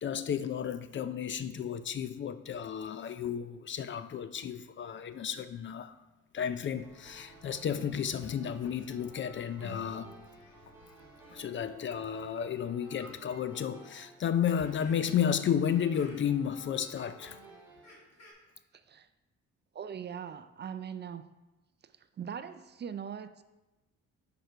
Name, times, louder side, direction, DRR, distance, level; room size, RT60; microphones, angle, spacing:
voice 1, 0.0-6.0 6.3-10.2 11.3-17.4, left 8 dB, 40° left, 0.4 m, -32 dB
sound 1, 6.4-11.4, left 6 dB, 75° left, 0.7 m, -53 dB
sound 2, 6.8-17.9, right 2 dB, 10° right, 2.5 m, -55 dB
sound 3, 13.0-13.1 13.5-13.6 14.5-15.3 15.7-16.3 17.2-17.3 17.8-18.3, left 2 dB, 60° left, 2.2 m, -54 dB
voice 2, 19.7-21.3 22.2-23.4, right 8 dB, 35° right, 0.4 m, -40 dB
6.5 x 5.1 x 4.6 m
cardioid pair, 90°, 30 cm